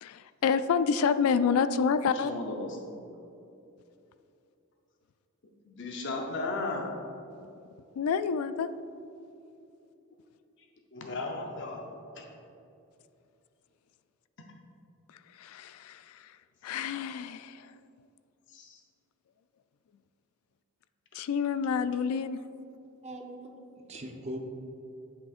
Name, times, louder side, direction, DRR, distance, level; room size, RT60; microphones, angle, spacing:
voice 1, 0.0-2.3 8.0-8.7 15.4-16.2 16.6-17.7 21.1-22.4, left 6 dB, 85° left, 13 dB, 0.3 m, -28 dB
voice 2, 2.1-3.1 5.7-6.9 10.9-11.8 12.2-12.3 18.5-18.8, left 3 dB, 60° left, 1 dB, 0.7 m, -35 dB
voice 3, 23.0-24.4, right 1 dB, 30° right, 2 dB, 0.7 m, -41 dB
8.4 x 7.5 x 2.5 m, 2.7 s
head